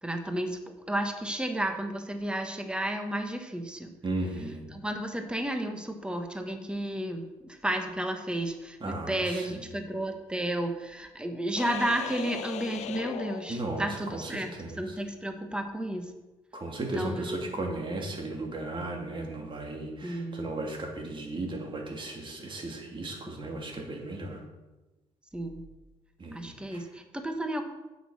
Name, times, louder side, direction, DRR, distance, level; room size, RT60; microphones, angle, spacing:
voice 1, 0.0-3.9 4.7-16.1 16.9-17.4 20.0-20.4 25.3-25.6 26.3-27.6, right 1 dB, 5° right, 5 dB, 1.4 m, -32 dB
voice 2, 4.0-4.6 8.8-9.6 13.5-15.0 16.5-24.4 26.2-26.8, right 2 dB, 40° right, 0 dB, 2.7 m, -35 dB
sound 1, 11.6-14.2, left 11 dB, 65° left, 0.5 m, -39 dB
7.7 x 6.6 x 6.4 m, 1.1 s
supercardioid pair, 60°, 13 cm